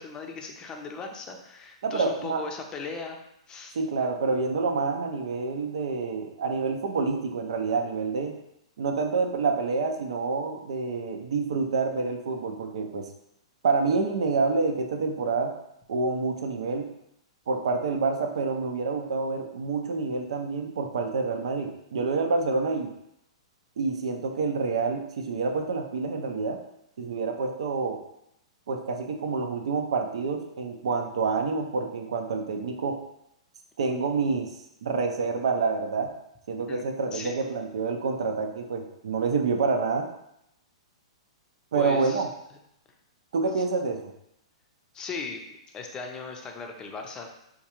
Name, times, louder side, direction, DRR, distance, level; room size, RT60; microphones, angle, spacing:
voice 1, 0.0-3.2 3.5-3.8 36.7-36.8 37.1-37.3 41.7-42.2 43.5-43.6 44.9-45.4 45.7-47.3, left 4 dB, 20° left, 3 dB, 0.5 m, -38 dB
voice 2, 1.8-2.4 3.7-8.4 8.8-13.1 13.6-15.5 15.9-16.9 17.5-22.9 23.8-26.6 27.0-28.0 28.7-33.0 33.8-34.5 34.8-36.1 36.5-40.1 41.7-42.3 43.3-44.1, right 4 dB, 70° right, 5 dB, 0.5 m, -27 dB
4.5 x 2.3 x 2.9 m, 0.79 s
hypercardioid pair, 125°, 3 cm